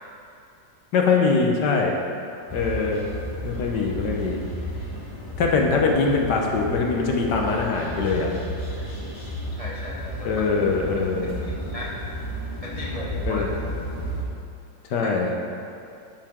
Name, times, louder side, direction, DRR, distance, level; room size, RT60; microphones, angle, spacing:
voice 1, 0.9-1.9 2.5-3.0 3.4-4.4 5.4-8.3 10.2-11.3 13.3-13.5 14.9-15.3, left 4 dB, 65° left, 1 dB, 1.5 m, -22 dB
sound 1, 2.5-14.2, equal, 20° left, 1.1 m, -33 dB
voice 2, 9.6-10.4 11.4-12.0 12.6-13.4 15.0-15.1, equal, 60° right, -5 dB, 0.3 m, -36 dB
9.8 x 7.9 x 3.6 m, 2.5 s
omnidirectional pair, 2.0 m